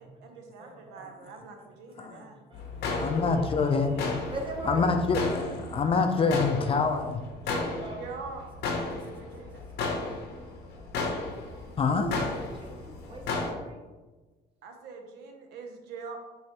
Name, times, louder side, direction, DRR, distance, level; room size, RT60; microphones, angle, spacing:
voice 1, 0.0-2.5 2.9-4.1 7.4-9.6 14.6-16.3, right 4 dB, 80° right, 4 dB, 0.6 m, -44 dB
voice 2, 0.6-1.7 2.1-3.5 4.3-4.9 7.4-8.1 11.9-13.8, right 2 dB, 30° right, 1 dB, 0.9 m, -42 dB
sound 1, 2.5-13.5, left 3 dB, 80° left, 0.8 m, -34 dB
voice 3, 3.0-3.9 4.7-7.2 11.8-12.1, left 4 dB, 35° left, 6 dB, 0.4 m, -25 dB
4.5 x 3.0 x 2.9 m, 1.2 s
cardioid pair, 110°, 17 cm